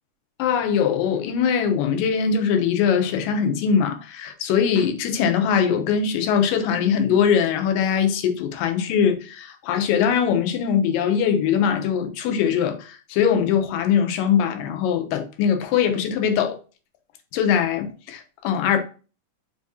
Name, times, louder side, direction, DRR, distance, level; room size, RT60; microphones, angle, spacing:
voice 1, 0.4-16.6 17.3-18.8, left 7 dB, 90° left, 2.4 m, -21 dB
5.6 x 3.5 x 2.7 m
omnidirectional pair, 3.8 m